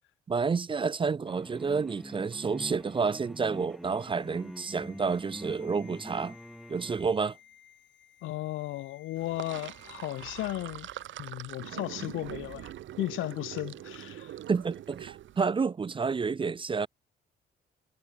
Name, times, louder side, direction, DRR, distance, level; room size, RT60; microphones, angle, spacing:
voice 1, 0.3-6.3 6.7-7.4 14.5-16.9, right 5 dB, 25° right, 0.5 m, -29 dB
sound 1, 1.3-7.1, equal, ahead, 1.2 m, -45 dB
sound 2, 2.4-11.4 11.6-11.8, left 10 dB, 65° left, 6.0 m, -58 dB
voice 2, 8.2-10.9 11.2-12.7 13.0-14.3, left 16 dB, 90° left, 1.3 m, -35 dB
Sink (filling or washing), 9.2-15.4, right 12 dB, 75° right, 1.8 m, -43 dB
cardioid pair, 90°, 20 cm